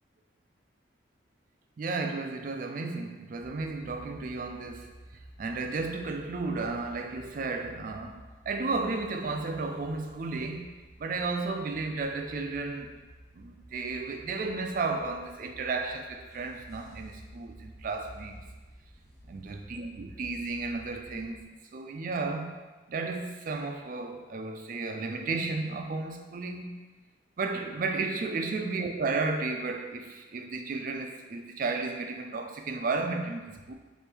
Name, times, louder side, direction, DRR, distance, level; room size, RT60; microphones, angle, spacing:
voice 1, 1.8-4.9 5.4-8.2 8.5-10.7 11.0-13.0 13.3-18.4 19.2-21.4 21.7-22.6 22.9-26.7 27.4-33.7, right 3 dB, 45° right, 4 dB, 0.3 m, -33 dB
sound 1, 3.3-21.4, right 1 dB, ahead, 0.9 m, -52 dB
4.4 x 2.6 x 3.3 m, 1.2 s
head